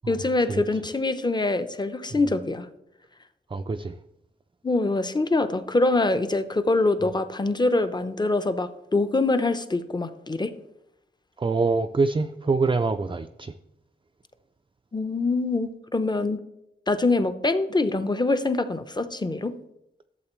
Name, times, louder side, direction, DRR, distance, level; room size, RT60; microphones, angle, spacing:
voice 1, 0.1-2.7 4.6-10.5 14.9-16.4 16.9-19.5, left 2 dB, 20° left, 0.6 m, -24 dB
voice 2, 3.5-3.9 11.4-13.5, right 4 dB, 25° right, 0.4 m, -25 dB
12.0 x 7.3 x 3.1 m
wide cardioid pair, 85°, 20 cm